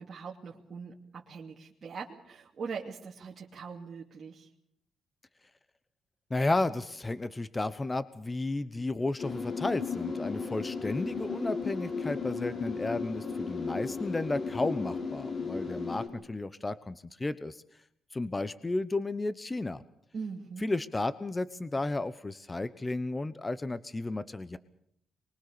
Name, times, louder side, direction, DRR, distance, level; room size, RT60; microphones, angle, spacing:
voice 1, 0.0-4.5 20.1-20.7, right 5 dB, 45° right, -3 dB, 2.7 m, -41 dB
voice 2, 6.3-17.6 18.1-19.8 20.6-24.6, left 2 dB, 20° left, 14 dB, 1.0 m, -33 dB
sound 1, 9.2-16.1, left 4 dB, 45° left, 5.9 m, -35 dB
24.5 x 22.0 x 6.8 m, 0.71 s
cardioid pair, 90°, 0 cm